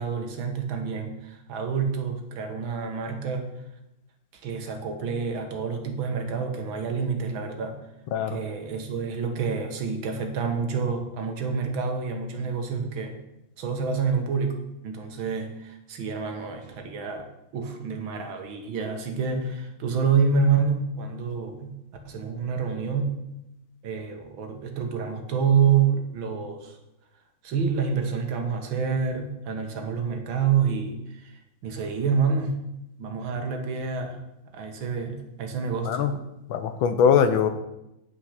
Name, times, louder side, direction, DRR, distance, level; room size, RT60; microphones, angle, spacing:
voice 1, 0.0-3.5 4.3-7.8 8.3-13.2 13.6-21.8 22.1-23.2 23.8-26.8 27.4-31.3 31.6-32.6 33.0-34.2 34.5-36.1, right 6 dB, 80° right, 4 dB, 2.1 m, -27 dB
voice 2, 36.5-37.5, left 7 dB, 85° left, 9 dB, 1.6 m, -21 dB
9.4 x 6.0 x 5.8 m, 0.88 s
omnidirectional pair, 2.2 m